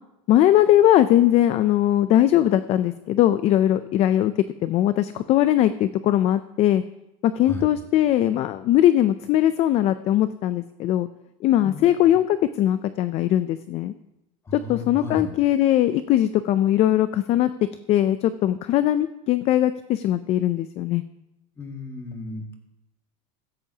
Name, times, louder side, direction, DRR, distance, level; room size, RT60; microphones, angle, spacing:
voice 1, 0.3-4.3 4.6-6.8 7.2-11.1 11.4-13.9 14.5-17.5 17.9-21.0, left 12 dB, 35° left, 13 dB, 0.4 m, -20 dB
voice 2, 7.4-7.8 11.6-12.0 14.5-15.3 21.6-22.6, left 2 dB, 15° left, 2 dB, 1.9 m, -35 dB
15.5 x 14.0 x 2.8 m, 0.91 s
supercardioid pair, 150°, 19 cm